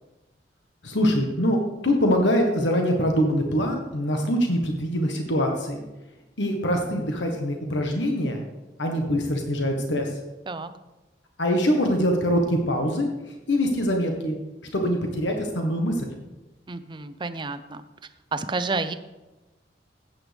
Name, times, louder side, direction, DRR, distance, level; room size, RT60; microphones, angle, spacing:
voice 1, 0.8-5.8 6.4-8.4 8.8-10.2 11.4-14.4 14.7-16.1, equal, 85° left, 3 dB, 1.4 m, -24 dB
voice 2, 16.7-17.8 18.3-18.9, right 3 dB, 25° right, 11 dB, 0.6 m, -30 dB
14.0 x 8.9 x 3.5 m, 1.1 s
head